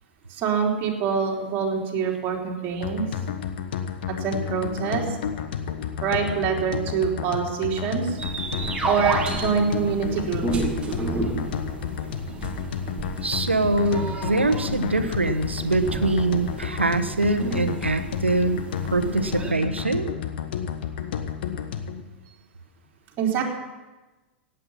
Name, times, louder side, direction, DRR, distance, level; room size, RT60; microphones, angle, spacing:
voice 1, 0.3-3.0 4.2-5.2 6.0-8.2 8.8-10.4 23.2-23.4, right 6 dB, 35° right, -1 dB, 3.6 m, -25 dB
sound 1, 2.8-22.0, left 7 dB, 60° left, 1.3 m, -31 dB
sound 2, 8.2-19.5, right 3 dB, 20° right, 2.6 m, -32 dB
voice 2, 13.2-18.6 18.9-20.1, right 2 dB, 90° right, 10 dB, 1.1 m, -23 dB
17.0 x 9.1 x 7.3 m, 1.1 s
figure-of-eight pair, 100°, 6 cm